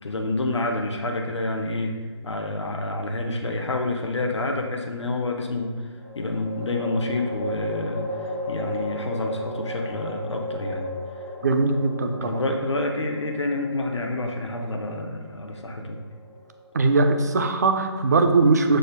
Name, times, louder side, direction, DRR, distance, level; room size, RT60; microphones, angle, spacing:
voice 1, 0.0-10.9 12.2-16.0, left 2 dB, 70° left, 3 dB, 0.6 m, -28 dB
sound 1, 3.4-3.7 6.0-17.3, left 1 dB, 25° left, 0.5 m, -35 dB
voice 2, 11.4-12.4 16.7-18.8, right 3 dB, 35° right, 7 dB, 0.3 m, -20 dB
6.4 x 2.1 x 3.2 m, 1.5 s
figure-of-eight pair, 150°, 15 cm